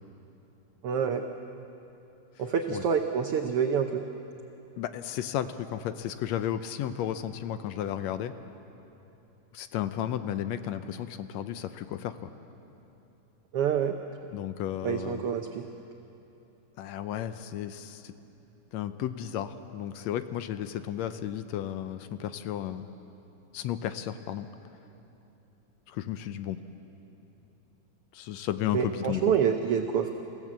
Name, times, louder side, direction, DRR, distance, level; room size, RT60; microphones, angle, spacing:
voice 1, 0.8-1.2 2.4-4.1 13.5-14.0 14.8-15.6 28.7-30.1, right 7 dB, 80° right, 5 dB, 1.2 m, -27 dB
voice 2, 4.8-8.3 9.5-12.3 14.3-15.2 16.8-18.1 18.7-22.9 23.5-24.5 25.9-26.6 28.1-29.3, left 10 dB, 75° left, 10 dB, 1.7 m, -33 dB
28.0 x 16.0 x 7.5 m, 2.9 s
omnidirectional pair, 3.6 m